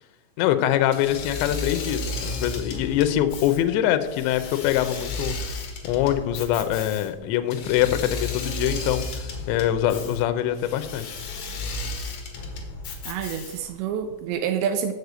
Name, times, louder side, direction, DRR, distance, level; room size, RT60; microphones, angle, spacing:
voice 1, 0.4-5.5 5.8-11.2, left 11 dB, 80° left, 9 dB, 2.7 m, -24 dB
Engine / Mechanisms, 0.9-13.8, left 2 dB, 65° left, 2.1 m, -34 dB
voice 2, 13.1-14.9, right 8 dB, 85° right, 7 dB, 2.6 m, -27 dB
7.4 x 6.6 x 8.0 m, 1.2 s
omnidirectional pair, 5.7 m